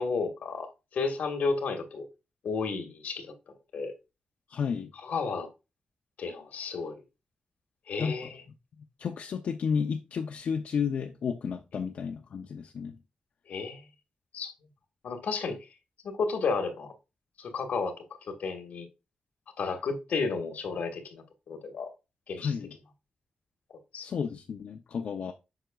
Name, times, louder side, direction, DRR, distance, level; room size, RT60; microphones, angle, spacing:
voice 1, 0.0-2.1 2.4-3.3 3.7-3.9 5.0-5.5 6.2-7.0 7.9-8.4 13.5-13.8 14.3-14.5 15.0-15.6 16.0-16.9 17.4-17.9 18.2-18.9 19.6-21.9 22.3-22.5 23.9-24.1, left 4 dB, 85° left, 1.5 m, -32 dB
voice 2, 4.5-4.9 8.0-8.3 9.0-13.0 22.4-22.8 24.0-25.3, left 6 dB, 65° left, 0.6 m, -32 dB
7.9 x 5.7 x 2.3 m
wide cardioid pair, 180°, 3 cm